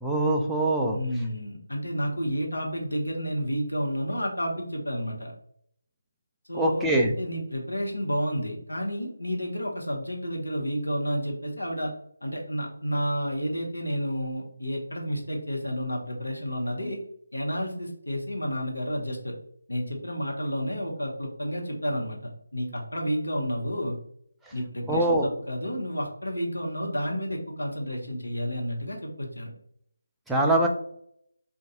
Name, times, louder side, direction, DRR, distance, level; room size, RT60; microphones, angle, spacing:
voice 1, 0.0-1.0 6.5-7.1 24.9-25.3 30.3-30.7, right 1 dB, 5° right, -2 dB, 0.3 m, -23 dB
voice 2, 0.9-5.3 6.5-11.9 12.2-17.0 17.3-19.3 19.7-24.0 24.5-29.5, equal, 85° left, 0 dB, 0.9 m, -31 dB
2.5 x 2.2 x 3.9 m, 0.68 s
figure-of-eight pair, 160°, 0 cm